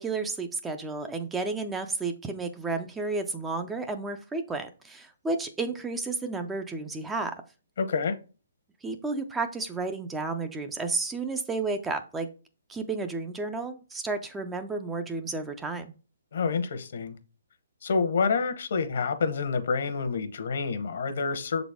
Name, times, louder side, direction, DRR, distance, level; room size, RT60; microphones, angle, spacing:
voice 1, 0.0-7.3 8.8-12.3 12.7-15.9, right 3 dB, 10° right, 0.4 m, -32 dB
voice 2, 7.8-8.2 16.3-17.2 17.8-21.6, left 5 dB, 65° left, 0.9 m, -28 dB
6.6 x 4.0 x 3.5 m
hypercardioid pair, 155°, 0 cm